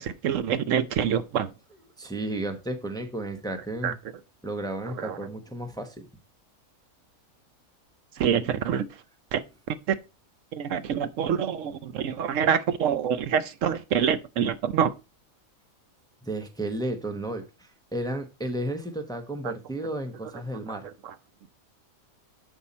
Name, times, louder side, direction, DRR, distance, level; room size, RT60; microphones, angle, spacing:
voice 1, 0.0-1.5 3.8-3.9 5.0-5.2 8.2-8.9 9.3-9.4 9.7-10.0 10.5-14.9 19.4-19.5 21.0-21.1, right 8 dB, 70° right, 1.0 m, -26 dB
voice 2, 2.0-4.0 4.4-5.9 16.2-20.9, right 1 dB, 5° left, 0.8 m, -33 dB
7.9 x 5.6 x 4.2 m
omnidirectional pair, 1.4 m